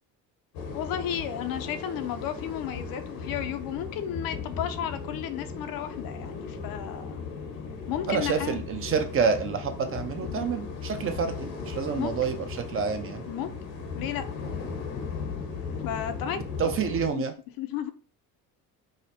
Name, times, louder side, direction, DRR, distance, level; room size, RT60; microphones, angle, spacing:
sound 1, 0.5-17.1, left 5 dB, 90° left, 1.1 m, -37 dB
voice 1, 0.7-7.3 7.9-8.6 10.3-10.5 12.0-12.2 13.3-13.5 13.9-14.2 15.8-16.4 17.1-17.2 17.6-17.9, left 10 dB, 65° left, 0.5 m, -33 dB
voice 2, 8.1-13.2 16.6-17.3, right 6 dB, 35° right, 0.5 m, -28 dB
4.9 x 2.0 x 2.8 m
cardioid pair, 125°, 38 cm